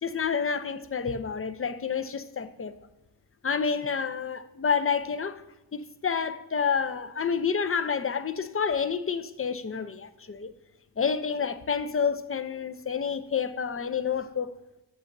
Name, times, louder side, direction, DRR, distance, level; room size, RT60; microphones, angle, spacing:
voice 1, 0.0-2.7 3.4-5.4 5.7-10.5 11.0-14.5, left 6 dB, 30° left, 0.5 m, -29 dB
8.1 x 7.2 x 2.6 m
cardioid pair, 45°, 45 cm